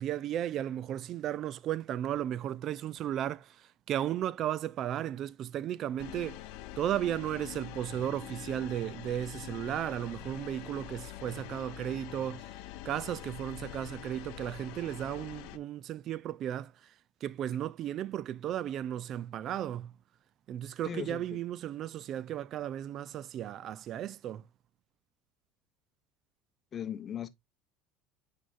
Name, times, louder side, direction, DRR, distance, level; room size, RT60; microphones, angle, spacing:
voice 1, 0.0-6.4 6.8-12.6 12.8-16.9 17.2-19.9 20.5-24.5, right 11 dB, 50° right, 0.3 m, -35 dB
sound 1, 6.0-15.6, left 13 dB, 70° left, 0.6 m, -45 dB
voice 2, 20.8-21.3 26.7-27.3, left 9 dB, 35° left, 0.8 m, -38 dB
8.3 x 4.7 x 2.5 m
supercardioid pair, 115°, 0 cm